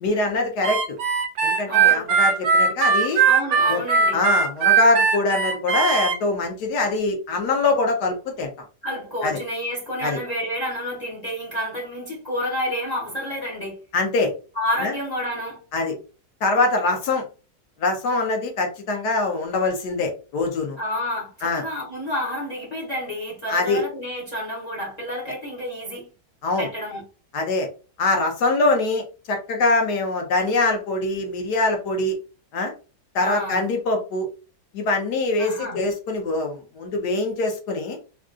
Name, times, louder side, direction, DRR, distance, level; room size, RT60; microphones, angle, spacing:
voice 1, 0.0-1.0 1.4-3.2 3.7-3.8 4.1-8.5 9.2-9.4 10.0-10.2 13.9-14.3 14.8-14.9 15.7-15.9 16.4-17.2 17.8-20.8 21.4-21.6 23.5-23.8 26.4-26.7 27.3-27.7 28.0-32.2 32.5-32.7 33.1-34.3 34.7-38.0, left 3 dB, 70° left, 1.2 m, -23 dB
Harmonica, 0.6-6.2, right 6 dB, 70° right, 1.0 m, -19 dB
voice 2, 1.7-2.1 3.2-4.3 8.8-13.8 14.5-15.6 20.8-26.1 26.6-27.0 33.2-33.6 35.4-35.8, left 1 dB, 40° left, 0.6 m, -29 dB
3.6 x 2.3 x 2.4 m
omnidirectional pair, 1.9 m